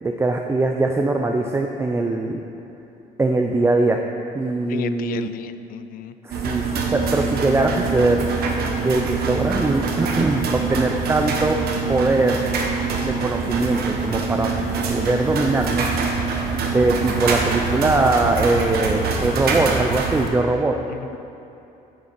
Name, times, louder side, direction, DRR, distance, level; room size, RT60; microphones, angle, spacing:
voice 1, 0.0-2.4 3.2-4.0 4.3-5.3 6.2-8.2 8.8-11.6 11.9-12.5 13.0-14.5 14.9-15.9 16.7-20.7, right 2 dB, 15° right, 3 dB, 0.4 m, -21 dB
voice 2, 4.7-6.1 20.9-21.2, left 10 dB, 60° left, 12 dB, 0.4 m, -32 dB
sound 1, 6.3-20.3, right 4 dB, 65° right, 1.1 m, -24 dB
9.6 x 7.2 x 4.2 m, 2.8 s
cardioid pair, 110°, 17 cm